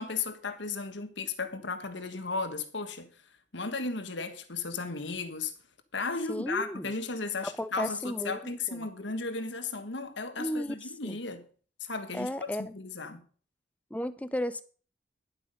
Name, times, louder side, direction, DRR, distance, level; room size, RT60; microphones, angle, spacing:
voice 1, 0.0-3.1 3.5-5.5 5.9-11.4 11.8-13.2, left 4 dB, 75° left, 1.5 m, -35 dB
voice 2, 6.3-6.9 7.4-8.9 10.4-10.8 11.0-11.2 12.1-12.7 13.9-14.6, left 1 dB, 10° left, 0.5 m, -34 dB
11.0 x 8.0 x 5.4 m
head